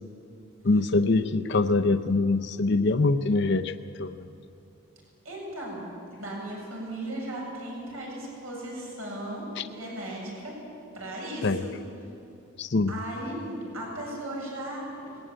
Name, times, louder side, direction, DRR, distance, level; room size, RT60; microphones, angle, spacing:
voice 1, 0.6-3.7 4.0-4.3 9.6-9.7 11.4-11.6 12.6-12.9, left 3 dB, 55° left, 8 dB, 0.6 m, -24 dB
voice 2, 5.2-5.8 6.1-10.6 10.9-11.7 12.9-14.9, right 1 dB, 85° right, -2 dB, 7.9 m, -36 dB
21.0 x 18.5 x 8.8 m, 2.9 s
head